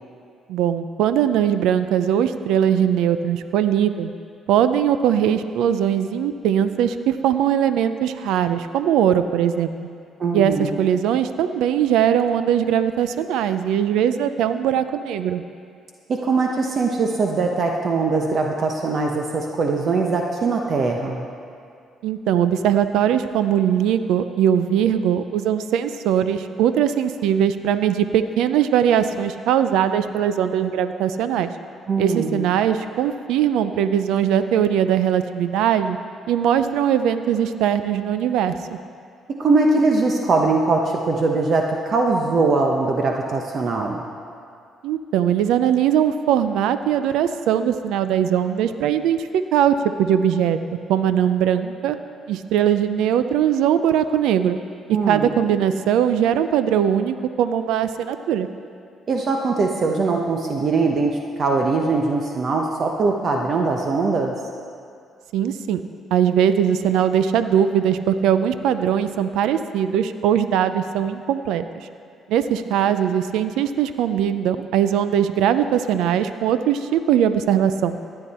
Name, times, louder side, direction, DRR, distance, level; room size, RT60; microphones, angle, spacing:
voice 1, 0.5-4.1 4.5-9.7 10.3-15.4 22.0-31.5 32.0-36.0 36.3-38.6 44.8-50.6 50.9-52.0 52.3-54.6 54.9-58.5 65.3-65.8 66.1-71.6 72.3-78.0, right 9 dB, 85° right, 11 dB, 0.5 m, -20 dB
voice 2, 10.2-10.8 16.1-21.3 31.9-32.4 39.4-44.0 54.9-55.3 59.1-64.3, right 3 dB, 50° right, 1 dB, 1.0 m, -21 dB
15.5 x 9.9 x 4.3 m, 2.3 s
cardioid pair, 85°, 0 cm